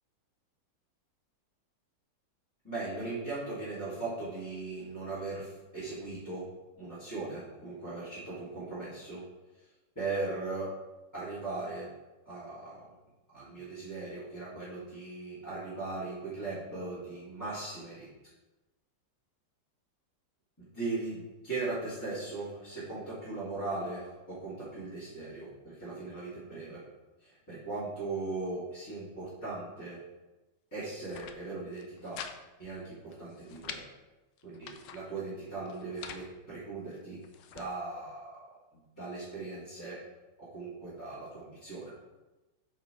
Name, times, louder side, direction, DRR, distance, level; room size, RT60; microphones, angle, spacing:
voice 1, 2.6-9.3 9.9-10.8 11.1-11.9 12.2-12.8 13.3-18.1 20.6-26.8 27.2-30.0 30.7-32.2 32.6-33.8 34.4-37.2 37.5-40.0 40.4-41.9, right 3 dB, 10° left, -12 dB, 2.7 m, -39 dB
sound 1, 30.9-31.4 31.7-32.4 32.6-32.7 33.1-33.8 34.4-35.0 35.7-36.3 36.9-37.7, left 8 dB, 80° left, 1.3 m, -45 dB
8.1 x 4.8 x 4.7 m, 1.1 s
omnidirectional pair, 2.0 m